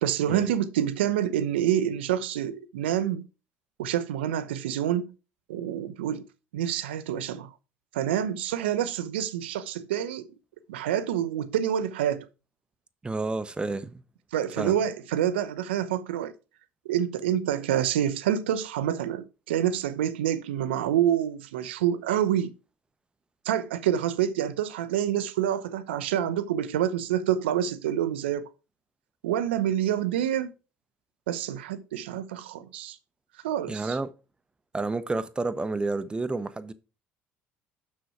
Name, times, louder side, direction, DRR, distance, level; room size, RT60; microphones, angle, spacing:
voice 1, 0.0-3.3 3.8-5.1 5.5-6.2 6.5-7.5 7.9-10.2 10.7-12.3 14.3-16.3 16.9-22.5 23.4-28.5 29.2-30.5 31.3-33.0 33.4-34.0, right 10 dB, 70° right, 0.6 m, -27 dB
voice 2, 13.0-14.0 14.6-14.8 33.7-34.1 34.7-36.7, right 3 dB, 15° right, 0.7 m, -30 dB
6.8 x 6.3 x 4.7 m
figure-of-eight pair, 60°, 6 cm